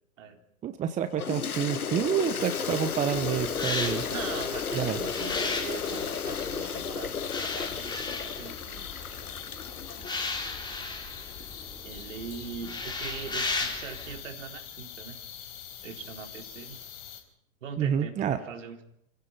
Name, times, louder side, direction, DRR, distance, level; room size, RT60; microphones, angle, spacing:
voice 1, 0.6-4.1 4.7-5.0 17.8-18.4, right 9 dB, 15° right, 11 dB, 1.0 m, -28 dB
Toilet flush, 1.2-10.5, left 6 dB, 90° left, 0.8 m, -34 dB
sound 1, 2.4-17.2, left 9 dB, 45° left, 4.4 m, -44 dB
sound 2, 3.1-14.2, left 3 dB, 10° left, 3.6 m, -36 dB
voice 2, 4.1-9.3 9.7-10.1 11.8-15.2 15.8-16.8 17.6-18.8, right 6 dB, 60° right, 4 dB, 3.8 m, -42 dB
28.0 x 16.5 x 5.7 m, 0.75 s
figure-of-eight pair, 110°, 42 cm